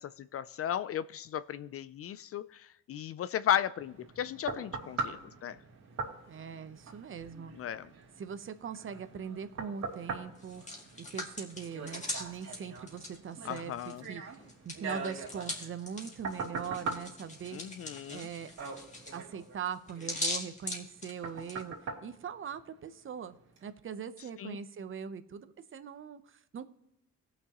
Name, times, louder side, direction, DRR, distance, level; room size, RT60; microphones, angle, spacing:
voice 1, 0.0-5.6 7.6-7.9 13.4-14.0 17.5-18.3 24.4-24.6, left 10 dB, 50° left, 16 dB, 0.4 m, -35 dB
sound 1, 3.8-23.1 23.6-23.7, right 4 dB, 60° right, 2.8 m, -43 dB
voice 2, 6.3-7.5 8.2-10.6 11.0-14.2 14.6-17.6 18.1-18.5 19.1-21.8 22.0-26.6, right 7 dB, 45° right, 11 dB, 0.9 m, -41 dB
Hands, 10.3-14.0 14.3-21.6, left 2 dB, 25° left, 2.1 m, -41 dB
18.0 x 6.0 x 3.0 m, 0.85 s
cardioid pair, 90°, 30 cm